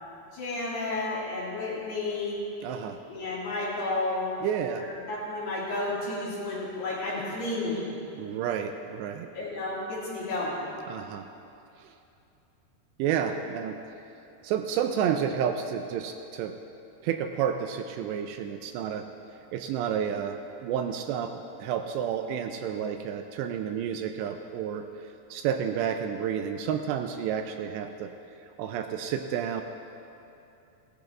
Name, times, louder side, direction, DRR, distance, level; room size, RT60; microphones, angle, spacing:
voice 1, 0.3-2.4 3.1-4.4 4.8-8.0 9.4-10.7, left 2 dB, 60° left, -8 dB, 5.2 m, -32 dB
voice 2, 2.6-3.0 4.4-4.8 8.2-9.3 10.9-11.3 13.0-13.8 14.4-16.5 17.0-19.1 19.5-24.8 25.3-28.1 28.6-29.6, right 8 dB, 80° right, 6 dB, 2.7 m, -30 dB
17.5 x 13.5 x 3.7 m, 2.7 s
omnidirectional pair, 5.2 m